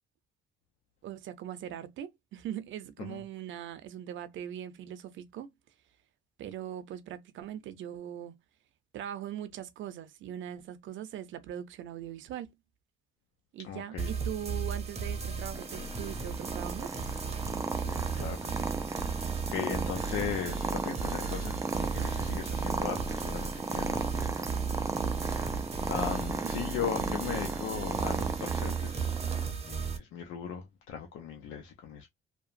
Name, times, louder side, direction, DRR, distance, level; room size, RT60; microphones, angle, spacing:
voice 1, 1.0-5.5 6.4-8.3 8.9-12.6 13.5-16.9 26.4-26.5, right 10 dB, 75° right, 0.6 m, -41 dB
voice 2, 13.6-14.1 17.8-19.1 19.5-24.5 25.9-32.1, left 8 dB, 90° left, 0.6 m, -38 dB
sound 1, 14.0-30.0, right 5 dB, 30° right, 0.7 m, -35 dB
Purr, 15.5-29.5, right 4 dB, 15° right, 0.4 m, -36 dB
2.8 x 2.2 x 2.5 m
cardioid pair, 90°, 20 cm